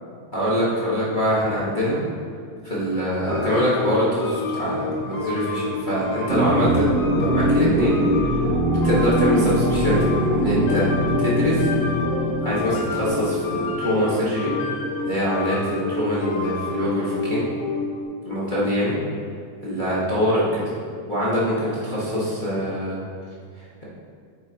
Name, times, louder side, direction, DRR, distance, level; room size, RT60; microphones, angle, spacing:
voice 1, 0.3-2.0 2.6-6.8 7.2-7.9 8.2-8.3 8.7-10.9 11.2-11.7 12.4-14.5 15.0-17.4 18.3-19.0 19.6-20.6 21.1-23.0 23.6-23.8, equal, 35° left, -9 dB, 0.7 m, -24 dB
sound 1, 3.3-18.0, left 3 dB, 65° left, 2.0 m, -29 dB
sound 2, 6.3-14.8, right 1 dB, 60° right, 1.9 m, -23 dB
9.7 x 7.8 x 2.9 m, 2.2 s
omnidirectional pair, 3.5 m